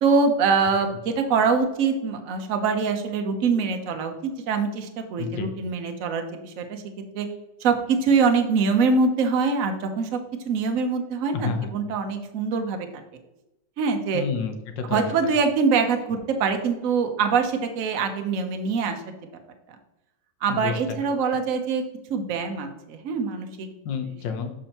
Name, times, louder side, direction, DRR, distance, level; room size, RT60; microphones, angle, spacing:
voice 1, 0.0-6.8 7.1-7.3 7.6-10.2 10.4-12.9 13.8-14.2 14.9-19.0 20.4-21.8 22.1-23.7, right 5 dB, 55° right, 5 dB, 1.0 m, -24 dB
voice 2, 5.2-5.5 11.3-11.7 14.1-15.3 20.5-21.1 23.8-24.5, left 6 dB, 80° left, 5 dB, 1.5 m, -30 dB
6.8 x 5.3 x 2.9 m, 0.94 s
omnidirectional pair, 2.0 m